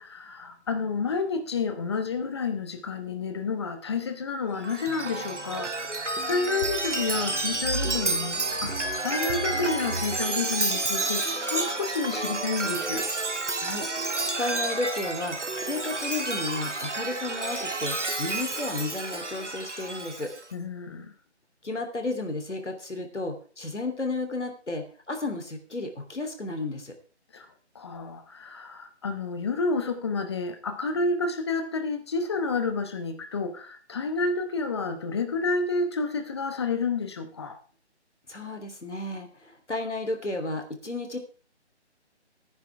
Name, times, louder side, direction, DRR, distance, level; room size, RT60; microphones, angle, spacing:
voice 1, 0.0-8.7 9.0-13.0 20.5-21.1 27.3-27.5 27.7-37.6, left 4 dB, 25° left, 9 dB, 1.0 m, -30 dB
Chime, 4.6-20.4, right 2 dB, 85° right, 1.9 m, -30 dB
voice 2, 13.6-13.9 14.4-20.3 21.6-26.9 38.3-41.2, left 2 dB, 80° left, 5 dB, 3.1 m, -33 dB
16.0 x 9.7 x 3.4 m, 0.40 s
figure-of-eight pair, 155°, 35 cm